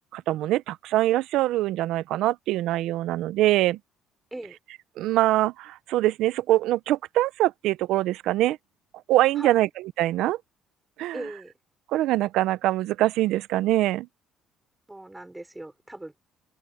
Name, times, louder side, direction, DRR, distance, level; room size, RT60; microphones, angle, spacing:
voice 1, 0.1-3.8 5.0-8.6 9.1-9.7 10.0-10.4 11.0-11.2 11.9-14.1, right 15 dB, 75° right, 0.6 m, -23 dB
voice 2, 9.4-9.7 11.1-11.5 14.9-16.2, right 1 dB, 5° right, 5.4 m, -39 dB
open air
cardioid pair, 155°, 0 cm